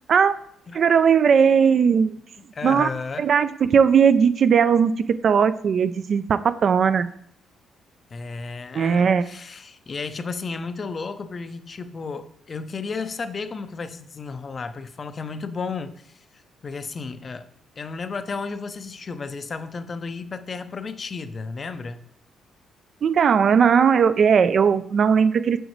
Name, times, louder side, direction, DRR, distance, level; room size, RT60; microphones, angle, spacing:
voice 1, 0.7-2.2 2.6-2.9 3.2-7.1 8.7-9.2 23.0-25.6, right 6 dB, 55° right, 13 dB, 0.3 m, -18 dB
voice 2, 2.5-3.3 8.1-16.2 16.6-17.5 17.8-22.0, left 4 dB, 40° left, 11 dB, 0.5 m, -33 dB
7.8 x 5.1 x 3.1 m, 0.70 s
cardioid pair, 90°, 0 cm